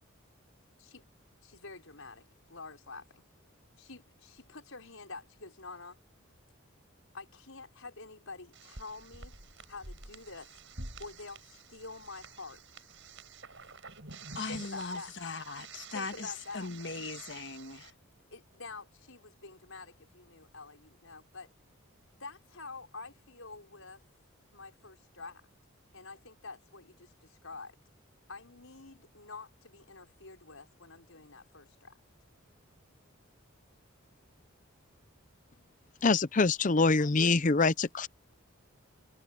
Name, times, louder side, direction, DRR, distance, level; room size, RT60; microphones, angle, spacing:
voice 1, 1.4-3.2 3.8-6.0 7.1-10.5 11.0-12.9 14.5-15.1 15.9-16.7 18.3-21.5 22.2-24.0 24.5-25.4 25.9-27.8 28.3-32.0, left 3 dB, 70° left, 5.2 m, -47 dB
sound 1, 8.5-17.9, right 3 dB, 60° right, 7.0 m, -49 dB
voice 2, 14.3-17.9, left 4 dB, 55° left, 1.5 m, -39 dB
voice 3, 36.0-38.1, left 3 dB, 35° left, 0.6 m, -25 dB
head